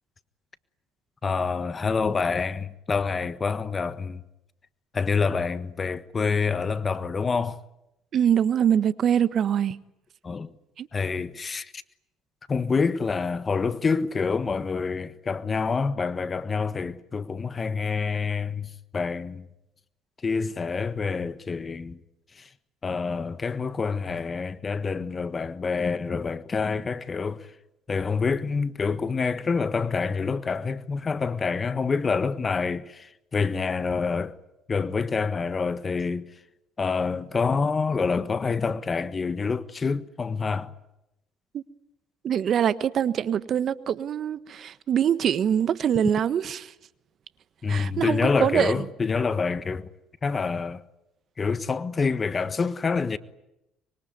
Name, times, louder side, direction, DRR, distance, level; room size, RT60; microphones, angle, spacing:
voice 1, 1.2-4.2 4.9-7.6 10.2-10.5 10.9-11.8 12.5-19.5 20.2-22.0 22.3-22.5 22.8-27.5 27.9-34.4 34.7-36.4 36.8-40.7 47.6-49.9 50.2-50.8 51.4-53.2, left 5 dB, 35° left, 1.4 m, -27 dB
voice 2, 8.1-9.8 10.8-10.9 41.5-41.6 42.2-46.7 47.7-48.7, right 9 dB, 55° right, 1.3 m, -24 dB
25.0 x 23.5 x 9.5 m
hypercardioid pair, 65°, 0 cm